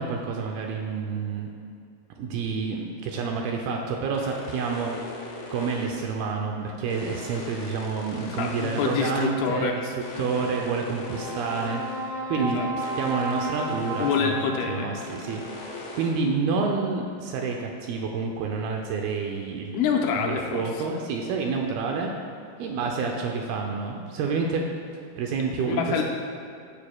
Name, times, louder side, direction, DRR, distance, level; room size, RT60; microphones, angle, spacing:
voice 1, 0.0-1.5 2.2-5.0 5.5-9.9 10.2-11.8 12.3-12.6 13.0-14.4 14.7-15.4 15.9-19.9 20.2-22.1 22.6-24.7 25.2-26.0, right 5 dB, 80° right, 1 dB, 2.3 m, -28 dB
sound 1, 4.1-6.2 6.9-9.4 10.0-12.1 12.8-14.3 15.0-16.1, left 2 dB, 70° left, 1.9 m, -40 dB
voice 2, 8.3-9.8 10.2-10.5 12.3-12.7 14.0-14.9 19.7-20.9 25.7-26.0, left 6 dB, 85° left, 1 dB, 2.6 m, -27 dB
Brass instrument, 10.9-15.3, right 2 dB, 60° right, 1.4 m, -33 dB
15.5 x 6.8 x 2.2 m, 2.4 s
omnidirectional pair, 4.8 m